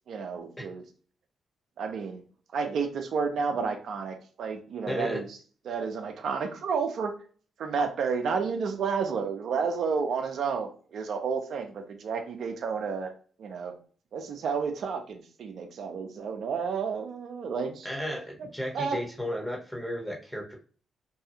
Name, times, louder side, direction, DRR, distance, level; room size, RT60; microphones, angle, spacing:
voice 1, 0.1-0.8 1.8-2.2 2.5-5.4 5.6-7.1 7.6-13.1 13.4-13.7 14.1-17.9 18.7-19.0, right 5 dB, 70° right, 4 dB, 0.5 m, -31 dB
voice 2, 4.9-5.2 17.8-20.5, equal, 15° left, 0 dB, 1.1 m, -33 dB
2.7 x 2.3 x 2.7 m, 0.41 s
supercardioid pair, 55°, 0 cm